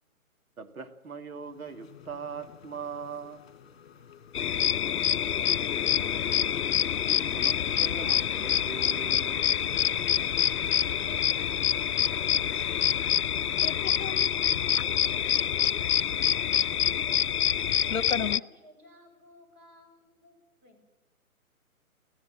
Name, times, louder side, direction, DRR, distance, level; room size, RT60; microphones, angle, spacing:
voice 1, 0.6-3.4 7.1-9.6, right 5 dB, 70° right, 2.3 m, -41 dB
sound 1, 1.3-17.9, left 8 dB, 45° left, 2.5 m, -52 dB
sound 2, 4.3-18.4, left 9 dB, 85° left, 0.6 m, -26 dB
Train, 5.5-13.1, left 4 dB, 20° left, 5.7 m, -48 dB
voice 2, 9.8-12.9 17.3-20.3 20.6-20.8, equal, 25° right, 6.4 m, -55 dB
voice 3, 13.5-14.3 17.9-18.4, left 6 dB, 65° left, 1.2 m, -33 dB
24.0 x 16.0 x 7.3 m
figure-of-eight pair, 145°, 44 cm